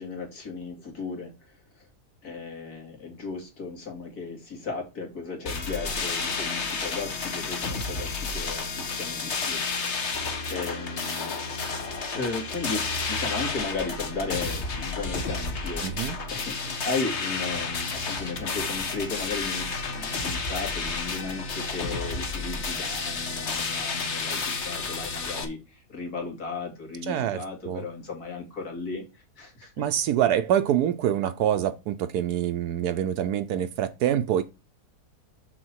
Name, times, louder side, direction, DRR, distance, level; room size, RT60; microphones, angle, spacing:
voice 1, 0.0-1.9 2.2-11.3 12.1-29.0 29.4-29.7, left 4 dB, 70° left, 2.9 m, -35 dB
sound 1, 5.5-25.5, left 4 dB, 45° left, 1.4 m, -31 dB
voice 2, 15.8-16.2 27.1-27.8 29.8-34.4, right 10 dB, 80° right, 1.1 m, -25 dB
6.7 x 6.3 x 4.6 m
omnidirectional pair, 1.7 m